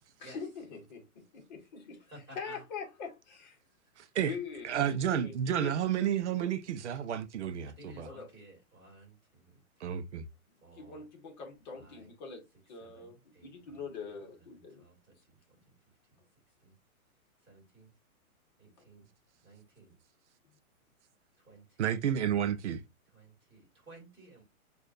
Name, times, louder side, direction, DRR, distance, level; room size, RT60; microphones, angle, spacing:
voice 1, 0.2-1.8 2.3-3.5 4.2-5.7 8.0-8.3 10.7-14.9 18.8-18.9, left 5 dB, 30° left, 1.4 m, -43 dB
voice 2, 2.1-2.6 7.7-10.1 10.6-11.0 11.7-12.1 12.8-14.2 14.5-15.4 16.1-16.2 16.6-16.7 17.4-17.9 18.6-19.1 19.4-20.0 21.4-21.9 23.1-24.4, right 2 dB, 10° right, 1.8 m, -55 dB
voice 3, 4.6-8.1 9.8-10.3 21.8-22.8, right 9 dB, 55° right, 0.6 m, -31 dB
6.5 x 2.5 x 2.6 m
hypercardioid pair, 165°, 43 cm